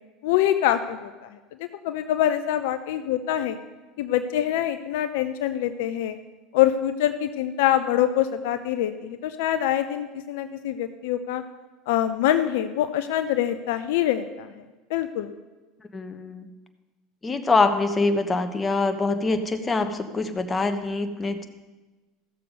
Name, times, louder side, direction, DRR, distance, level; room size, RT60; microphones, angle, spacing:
voice 1, 0.2-1.4 1.8-3.6 4.0-6.2 6.5-11.4 11.9-14.5 14.9-15.3, left 11 dB, 70° left, 10 dB, 0.5 m, -24 dB
voice 2, 15.9-16.5 17.2-21.5, left 3 dB, 20° left, 8 dB, 1.1 m, -24 dB
14.5 x 6.8 x 5.3 m, 1.2 s
hypercardioid pair, 80°, 0 cm